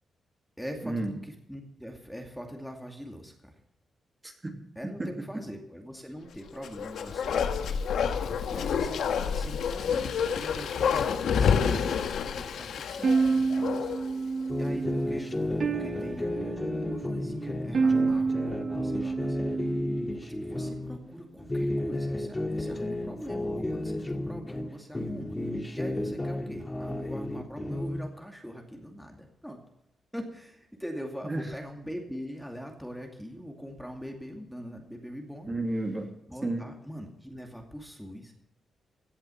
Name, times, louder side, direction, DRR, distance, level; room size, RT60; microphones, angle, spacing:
voice 1, 0.6-3.6 4.8-7.8 8.1-19.7 20.1-29.6 30.1-35.6 36.3-38.3, equal, ahead, 2 dB, 2.4 m, -42 dB
voice 2, 4.2-5.2 31.2-31.4 35.5-36.1 36.4-36.7, right 2 dB, 20° right, 3 dB, 2.6 m, -32 dB
Bark, 6.6-14.1 14.5-14.6, left 7 dB, 85° left, 1.5 m, -28 dB
sound 1, 13.0-20.1, right 4 dB, 50° right, 1.1 m, -29 dB
sound 2, 14.5-21.0 21.4-24.7 24.9-28.1, left 1 dB, 15° left, 2.1 m, -32 dB
17.0 x 11.0 x 5.8 m, 0.82 s
cardioid pair, 115°, 0 cm